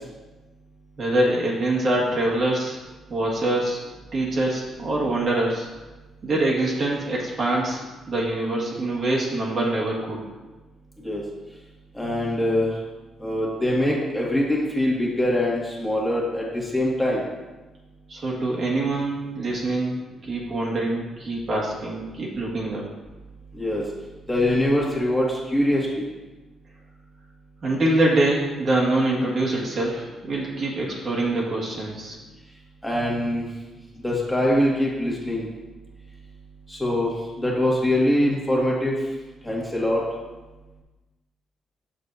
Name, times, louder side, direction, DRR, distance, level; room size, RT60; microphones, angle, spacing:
voice 1, 1.0-2.8 3.1-3.8 4.1-5.7 6.2-7.8 8.1-10.2 18.1-22.8 27.6-32.2, right 2 dB, 50° right, -4 dB, 1.9 m, -24 dB
voice 2, 11.9-12.7 13.2-17.2 23.5-23.8 24.3-26.1 32.8-33.5 34.0-35.5 36.7-37.1 37.4-38.9 39.4-40.0, left 1 dB, 10° left, -5 dB, 1.8 m, -23 dB
6.8 x 6.6 x 2.7 m, 1.2 s
cardioid pair, 90°, 0 cm